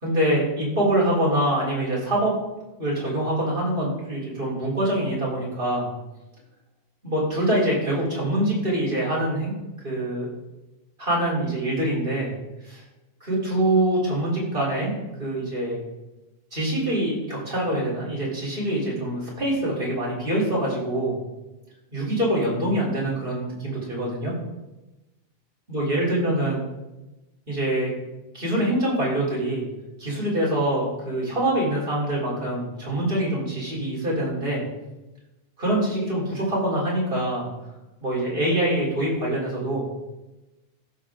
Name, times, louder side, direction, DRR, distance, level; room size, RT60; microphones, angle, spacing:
voice 1, 0.0-2.3 2.8-5.9 7.0-9.6 9.8-10.3 11.0-12.3 12.6-12.8 13.2-15.8 16.5-21.1 21.9-24.3 25.7-26.6 27.5-27.9 28.3-29.7 30.0-34.6 35.6-37.5 38.0-39.8, right 1 dB, 60° right, -5 dB, 3.8 m, -24 dB
14.0 x 6.6 x 3.7 m, 1.0 s
omnidirectional pair, 1.0 m